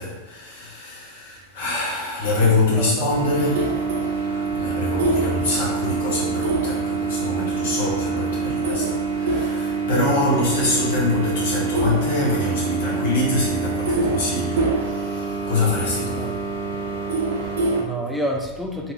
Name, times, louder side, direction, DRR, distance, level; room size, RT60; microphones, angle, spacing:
voice 1, 0.0-16.4, left 2 dB, 55° left, -5 dB, 1.2 m, -25 dB
voice 2, 2.7-3.3 9.9-10.7 16.0-16.4 17.4-18.9, right 1 dB, ahead, 1 dB, 0.4 m, -30 dB
sound 1, 3.1-17.8, right 4 dB, 60° right, 0.4 m, -25 dB
2.9 x 2.5 x 3.4 m, 1.1 s
figure-of-eight pair, 90°, 0 cm